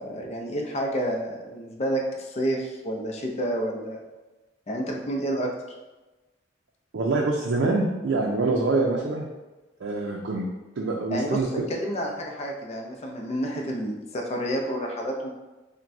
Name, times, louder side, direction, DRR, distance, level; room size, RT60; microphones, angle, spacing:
voice 1, 0.0-4.0 4.7-5.5 11.1-15.3, equal, 35° left, 1 dB, 0.5 m, -29 dB
voice 2, 6.9-9.3 9.8-10.5 10.8-11.5, right 3 dB, 90° right, -1 dB, 0.5 m, -25 dB
5.8 x 2.2 x 2.6 m, 1.1 s
head